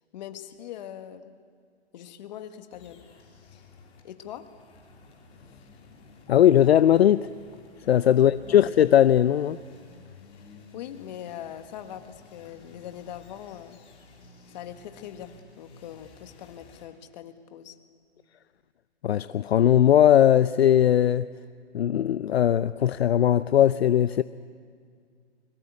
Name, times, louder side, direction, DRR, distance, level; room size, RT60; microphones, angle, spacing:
voice 1, 0.1-1.4 1.9-3.0 3.5-3.7 4.0-4.5 8.1-8.6 10.3-13.8 14.5-17.8, left 10 dB, 40° left, 1.7 m, -42 dB
sound 1, 2.7-16.9, left 4 dB, 15° left, 3.5 m, -53 dB
voice 2, 6.3-7.3 7.9-9.6 19.0-21.3 21.7-24.2, left 10 dB, 65° left, 0.6 m, -19 dB
25.0 x 22.0 x 8.4 m
hypercardioid pair, 150°, 33 cm